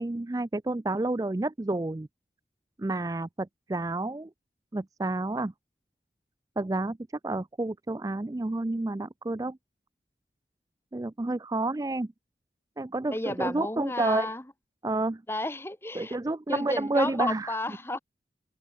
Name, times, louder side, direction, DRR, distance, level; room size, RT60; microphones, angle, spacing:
voice 1, 0.0-2.1 2.8-4.3 4.7-5.5 6.6-7.0 7.2-9.6 10.9-12.1 12.8-14.3 14.8-15.2 16.0-17.6, right 2 dB, 20° right, 0.4 m, -30 dB
voice 2, 13.1-14.4 15.3-16.2 16.5-18.0, left 1 dB, 15° left, 1.4 m, -32 dB
head